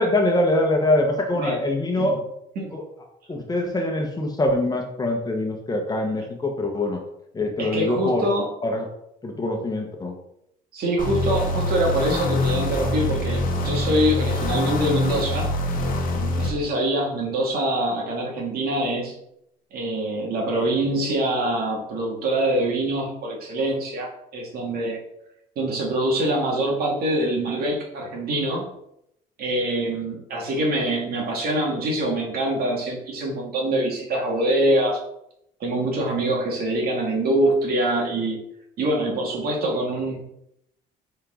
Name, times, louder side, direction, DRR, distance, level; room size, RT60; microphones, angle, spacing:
voice 1, 0.0-2.2 2.7-2.8 3.3-7.0 7.3-8.3 8.6-8.9 9.2-10.2, left 1 dB, 25° left, 2 dB, 1.2 m, -23 dB
voice 2, 7.6-8.5 10.7-15.5 16.1-19.2 19.7-25.0 25.6-28.7 29.4-35.0 35.6-38.4 38.8-40.2, right 1 dB, 65° right, -1 dB, 2.3 m, -24 dB
sound 1, 11.0-16.5, left 2 dB, 55° left, 1.2 m, -24 dB
6.7 x 4.3 x 3.9 m, 0.78 s
cardioid pair, 110°, 17 cm